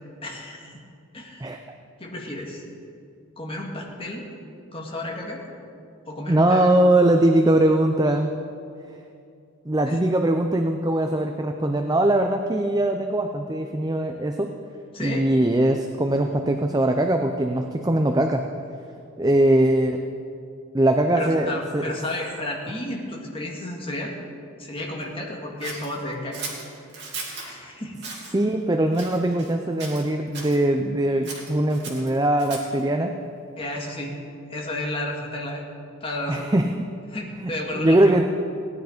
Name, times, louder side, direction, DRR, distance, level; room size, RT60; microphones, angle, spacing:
voice 1, 0.2-0.7 1.1-1.5 2.0-2.6 3.4-4.3 4.7-5.4 6.1-6.7 9.9-10.0 14.9-15.3 21.1-24.2 24.6-26.4 27.4-28.0 33.6-34.2 34.5-35.6 36.0-36.5 37.1-38.2, left 1 dB, 25° left, -1 dB, 1.9 m, -32 dB
voice 2, 6.3-8.3 9.7-14.5 15.0-18.4 19.2-20.1 20.7-21.9 28.3-33.2 36.3-36.8 37.4-38.3, right 1 dB, 20° right, 5 dB, 0.5 m, -21 dB
Scissors, 25.6-27.5 28.0-28.3 28.9-29.5 29.8-30.6 31.2-32.8, right 4 dB, 55° right, 2.7 m, -37 dB
18.0 x 10.5 x 5.1 m, 2.4 s
head